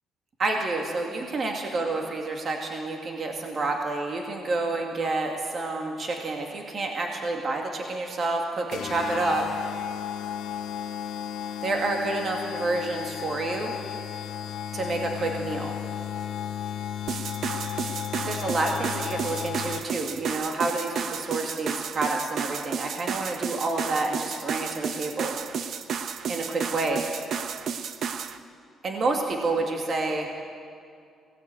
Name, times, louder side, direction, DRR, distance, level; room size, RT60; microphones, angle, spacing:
voice 1, 0.4-9.4 11.6-13.7 14.7-15.7 18.2-25.3 26.3-27.0 28.8-30.3, right 3 dB, 35° right, 2 dB, 2.3 m, -29 dB
sound 1, 8.7-20.1, left 9 dB, 70° left, 1.3 m, -34 dB
sound 2, 17.1-28.4, right 7 dB, 50° right, 1.0 m, -32 dB
22.0 x 18.0 x 9.2 m, 2.3 s
cardioid pair, 155°, 0 cm